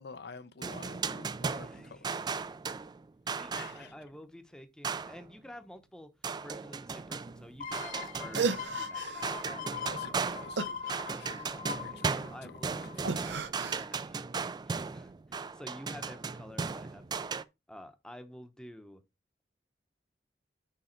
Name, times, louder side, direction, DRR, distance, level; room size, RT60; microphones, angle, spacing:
voice 1, 0.0-2.5 3.5-3.9 9.7-11.4 11.7-13.4, left 4 dB, 65° left, 0.6 m, -50 dB
sound 1, 0.6-3.9 4.8-5.3 6.2-8.9 9.2-17.4, right 5 dB, 25° right, 0.3 m, -36 dB
voice 2, 1.5-2.2 3.3-6.1 6.4-10.3 11.5-13.0 13.7-14.3 14.7-17.4 17.7-19.0, equal, 5° left, 0.8 m, -51 dB
sound 2, 7.6-13.1 13.5-13.6, left 6 dB, 50° left, 1.0 m, -41 dB
sound 3, 8.0-8.1 8.3-9.3 10.6-11.6 13.0-13.8, right 4 dB, 90° right, 0.6 m, -34 dB
6.6 x 4.7 x 4.4 m
head